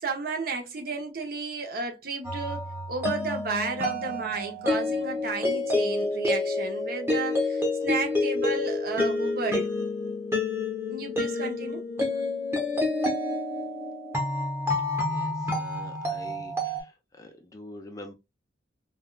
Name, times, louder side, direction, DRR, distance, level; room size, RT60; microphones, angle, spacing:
voice 1, 0.0-9.7 10.9-11.8, right 4 dB, 50° right, 0.7 m, -33 dB
sound 1, 2.2-16.8, left 2 dB, 15° right, 0.9 m, -28 dB
voice 2, 15.1-16.7 17.2-18.1, left 1 dB, 20° left, 0.4 m, -45 dB
3.4 x 2.2 x 2.2 m
head